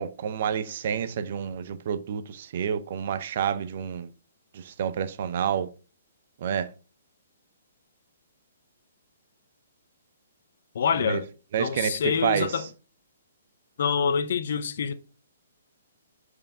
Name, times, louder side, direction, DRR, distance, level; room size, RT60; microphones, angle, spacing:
voice 1, 0.0-4.1 4.5-5.7 6.4-6.7 11.0-11.2 11.5-12.7, right 8 dB, 50° right, 0.7 m, -29 dB
voice 2, 10.7-11.3 11.6-12.7 13.8-14.9, left 6 dB, 55° left, 0.8 m, -26 dB
7.5 x 4.8 x 3.6 m
figure-of-eight pair, 125°, 0 cm